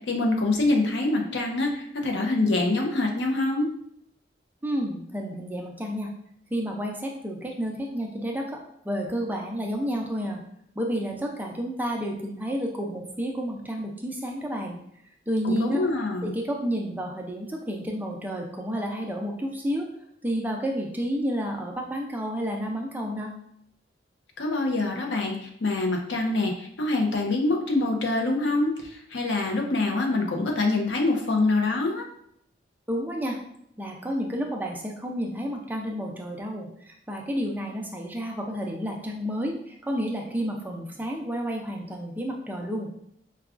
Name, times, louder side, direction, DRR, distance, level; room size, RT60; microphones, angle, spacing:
voice 1, 0.1-3.7 15.4-16.3 24.4-32.0, left 2 dB, 75° left, 1 dB, 0.6 m, -25 dB
voice 2, 4.6-6.1 6.5-8.6 8.8-10.4 10.8-14.8 15.3-15.8 16.2-19.9 20.2-23.3 32.9-33.4 33.8-42.9, equal, 10° right, 0 dB, 0.4 m, -30 dB
4.7 x 2.2 x 2.4 m, 0.71 s
head